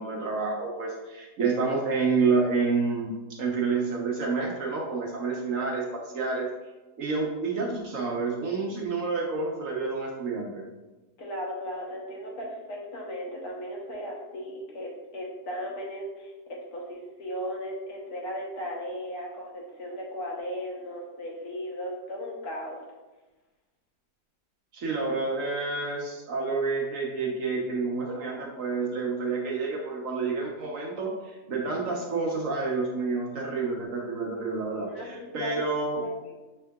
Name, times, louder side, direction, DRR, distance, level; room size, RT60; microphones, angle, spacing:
voice 1, 0.0-3.1 3.4-6.5 7.0-10.6 24.7-36.0, right 4 dB, 60° right, -2 dB, 1.0 m, -29 dB
voice 2, 11.2-22.8 34.9-35.5 36.0-36.4, equal, 70° left, -2 dB, 1.4 m, -36 dB
6.0 x 3.6 x 2.3 m, 1.1 s
omnidirectional pair, 1.8 m